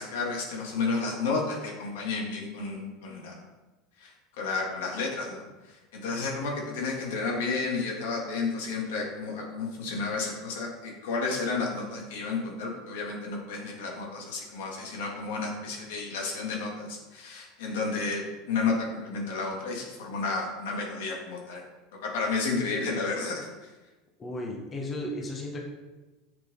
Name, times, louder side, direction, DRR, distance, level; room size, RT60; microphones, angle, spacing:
voice 1, 0.0-3.3 4.0-21.6 22.0-23.7, left 4 dB, 85° left, -1 dB, 2.8 m, -32 dB
voice 2, 24.2-25.6, left 1 dB, 25° left, 0 dB, 1.7 m, -34 dB
10.0 x 7.6 x 4.0 m, 1.1 s
supercardioid pair, 140°, 0 cm